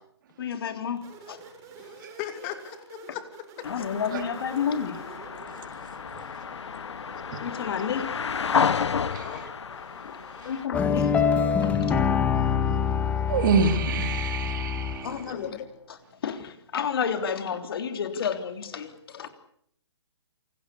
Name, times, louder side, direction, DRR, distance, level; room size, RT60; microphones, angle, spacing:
voice 1, 0.4-1.4 3.6-5.0 7.4-8.1 10.0-10.2 10.4-11.1 11.6-11.9 15.0-15.6 15.9-19.3, left 7 dB, 55° left, 3.3 m, -31 dB
sound 1, 1.0-14.1, right 4 dB, 20° right, 6.9 m, -50 dB
voice 2, 1.8-3.2 3.6-3.7 9.2-9.5 15.3-15.7, left 11 dB, 25° left, 2.7 m, -38 dB
sound 2, 3.6-10.7, left 6 dB, 75° left, 1.3 m, -31 dB
sound 3, 10.7-15.2, left 7 dB, 10° left, 1.6 m, -25 dB
voice 3, 13.3-15.1, right 5 dB, 45° right, 3.7 m, -26 dB
27.5 x 19.5 x 8.4 m
hypercardioid pair, 155°, 15 cm